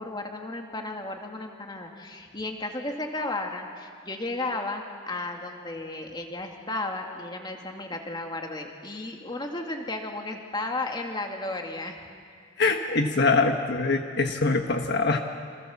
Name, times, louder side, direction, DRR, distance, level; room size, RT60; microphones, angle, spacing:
voice 1, 0.0-12.0, left 2 dB, 25° left, 2 dB, 2.4 m, -34 dB
voice 2, 12.6-15.2, left 3 dB, 55° left, 4 dB, 1.4 m, -23 dB
29.0 x 26.5 x 7.3 m, 2.2 s
head